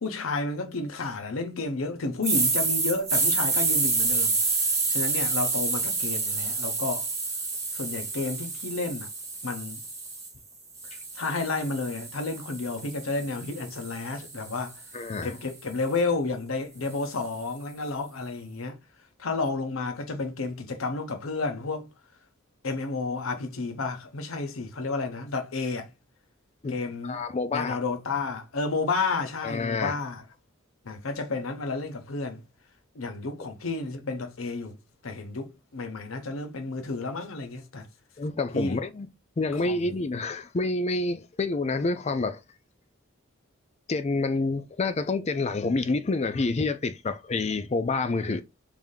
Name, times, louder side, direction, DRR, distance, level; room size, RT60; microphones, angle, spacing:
voice 1, 0.0-4.4 4.9-7.0 7.7-9.1 9.4-9.8 11.1-14.7 15.2-18.8 19.2-21.9 22.6-25.9 26.7-27.2 27.5-30.2 30.8-32.4 32.9-34.8 35.0-37.9 38.5-38.8 39.6-39.8, left 3 dB, 85° left, 0.8 m, -31 dB
sound 1, 2.2-10.3 10.8-15.0, right 3 dB, 15° right, 0.9 m, -28 dB
voice 2, 14.9-15.4 26.6-26.8 27.0-27.8 29.4-30.0 38.2-39.1 39.4-42.4 43.9-48.4, left 3 dB, 35° left, 0.4 m, -28 dB
3.4 x 2.7 x 3.6 m
head